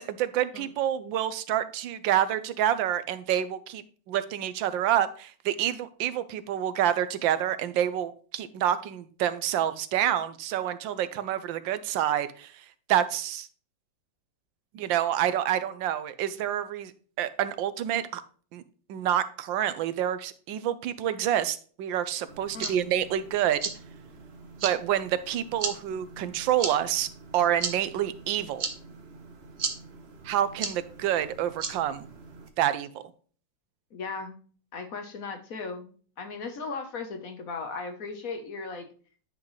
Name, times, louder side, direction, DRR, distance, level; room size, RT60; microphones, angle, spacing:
voice 1, 0.0-12.5 12.9-13.5 14.7-16.9 17.2-18.2 18.5-18.6 18.9-23.6 24.6-27.1 27.3-28.7 30.2-32.1 32.6-32.9, right 11 dB, 80° right, 13 dB, 1.4 m, -28 dB
sound 1, 22.3-32.5, right 5 dB, 40° right, 1.0 m, -38 dB
voice 2, 22.5-22.9 33.9-34.4 34.7-38.9, left 4 dB, 55° left, 6 dB, 1.2 m, -37 dB
9.7 x 5.9 x 3.1 m, 0.42 s
omnidirectional pair, 2.0 m